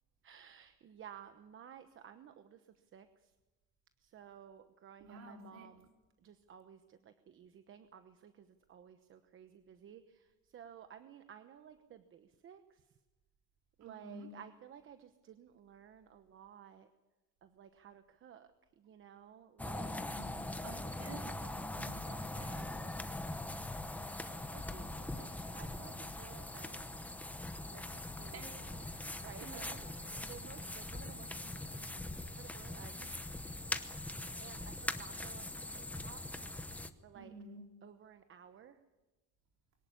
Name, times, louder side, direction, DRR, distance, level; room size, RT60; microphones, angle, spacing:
voice 1, 0.2-3.3 4.0-5.9 6.2-12.9 13.8-16.9 17.4-20.0 20.7-20.8 24.2-27.1 27.7-28.9 29.2-33.2 34.4-36.2 37.0-37.3 37.8-38.8, right 9 dB, 40° right, 9 dB, 1.0 m, -55 dB
voice 2, 5.0-5.7 13.8-14.3 19.9-20.3 20.6-22.8 28.3-28.6 29.4-29.8 37.1-37.7, right 2 dB, 55° right, 2 dB, 4.4 m, -51 dB
sound 1, 19.6-36.9, left 1 dB, 5° left, 0.9 m, -42 dB
23.0 x 18.5 x 8.4 m, 1.1 s
cardioid pair, 170°, 32 cm